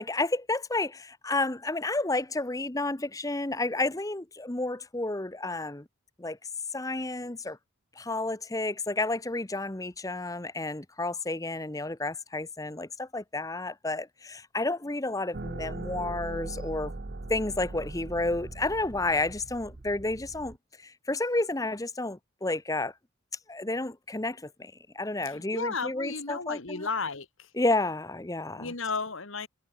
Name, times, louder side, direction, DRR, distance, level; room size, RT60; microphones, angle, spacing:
voice 1, 0.0-5.8 6.2-6.4 6.7-7.6 8.0-16.9 17.3-20.6 20.8-22.9 23.5-26.9 27.6-28.7, left 2 dB, 15° left, 0.8 m, -31 dB
sound 1, 15.3-20.6, right 2 dB, 50° right, 0.9 m, -40 dB
voice 2, 25.3-27.5 28.6-29.5, left 4 dB, 70° left, 2.3 m, -34 dB
head